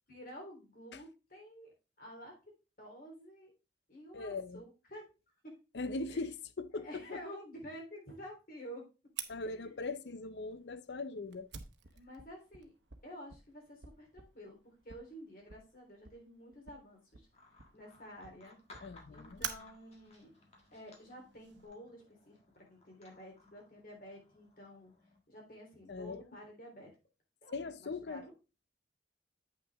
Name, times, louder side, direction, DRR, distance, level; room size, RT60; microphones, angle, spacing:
voice 1, 0.1-2.3 2.8-3.5 3.9-5.0 5.4-5.5 6.1-6.2 6.7-8.8 9.4-9.9 11.9-12.7 13.0-17.3 17.7-18.6 19.1-20.3 20.7-24.9 25.3-26.9 27.4-28.3, equal, 50° left, 3.4 m, -51 dB
voice 2, 4.1-4.6 5.7-7.2 9.3-11.5 18.8-19.4 25.9-26.2 27.5-28.3, left 3 dB, 75° left, 0.6 m, -40 dB
Fire, 9.2-21.7, right 8 dB, 90° right, 0.9 m, -50 dB
sound 1, 17.3-25.2, left 2 dB, 35° left, 1.6 m, -62 dB
8.4 x 5.9 x 3.4 m
head